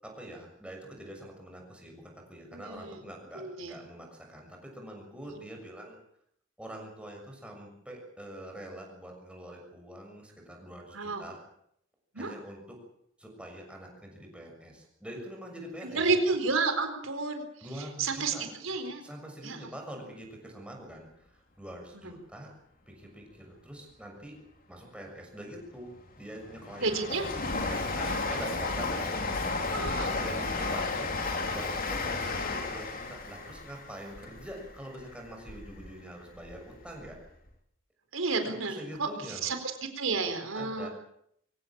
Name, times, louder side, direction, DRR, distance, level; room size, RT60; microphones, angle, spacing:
voice 1, 0.0-6.0 6.6-11.4 12.1-12.8 13.2-16.0 17.6-18.4 19.0-21.1 21.6-22.5 22.9-24.4 24.7-26.9 27.7-29.2 30.0-31.2 31.5-37.2 38.5-39.5 40.5-40.9, right 1 dB, 5° right, 1 dB, 6.7 m, -45 dB
voice 2, 2.5-3.0 3.3-3.8 5.2-5.4 10.9-11.2 12.1-12.3 15.8-17.7 18.0-19.0 19.4-19.7 21.9-22.1 26.8-27.2 28.0-28.5 29.7-30.2 38.1-40.9, right 3 dB, 90° right, 7 dB, 4.3 m, -31 dB
Train, 25.7-35.9 36.3-37.2 37.5-37.6, left 3 dB, 45° left, 3.4 m, -33 dB
24.0 x 16.5 x 8.8 m, 0.73 s
head